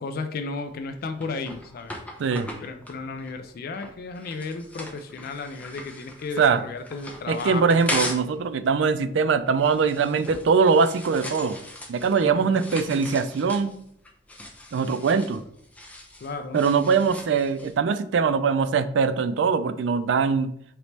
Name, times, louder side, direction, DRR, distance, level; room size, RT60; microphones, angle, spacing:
voice 1, 0.0-1.9 2.6-7.8 12.2-12.6 16.2-16.6, left 4 dB, 55° left, 7 dB, 0.3 m, -34 dB
sound 1, 0.6-8.4 8.7-17.7, left 1 dB, 10° left, 0.6 m, -38 dB
voice 2, 7.3-11.6 11.9-13.8 14.7-15.4 16.5-20.5, right 5 dB, 90° right, 11 dB, 0.4 m, -22 dB
4.0 x 3.0 x 3.3 m, 0.71 s
head